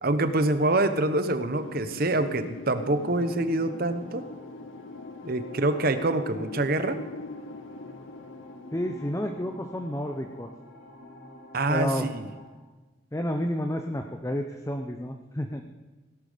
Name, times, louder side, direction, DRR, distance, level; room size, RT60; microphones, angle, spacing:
voice 1, 0.0-4.2 5.2-7.0 11.5-12.3, right 2 dB, 50° right, 10 dB, 1.0 m, -26 dB
Wind, 1.5-10.2, left 3 dB, 80° left, 0.6 m, -42 dB
sound 1, 2.5-12.5, left 1 dB, 50° left, 2.2 m, -48 dB
voice 2, 8.7-10.5 11.7-12.1 13.1-15.6, equal, 15° left, 5 dB, 0.7 m, -30 dB
17.0 x 11.5 x 5.1 m, 1.2 s
head